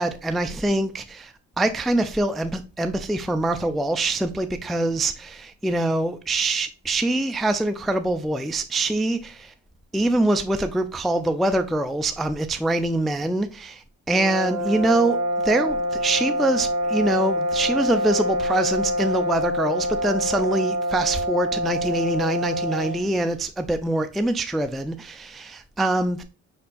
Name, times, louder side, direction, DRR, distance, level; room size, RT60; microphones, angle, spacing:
voice 1, 0.0-9.5 9.9-15.2 15.4-26.2, right 2 dB, ahead, 0.3 m, -24 dB
sound 1, 14.1-23.1, equal, 70° right, 1.0 m, -26 dB
5.0 x 4.3 x 2.3 m
cardioid pair, 90°, 30 cm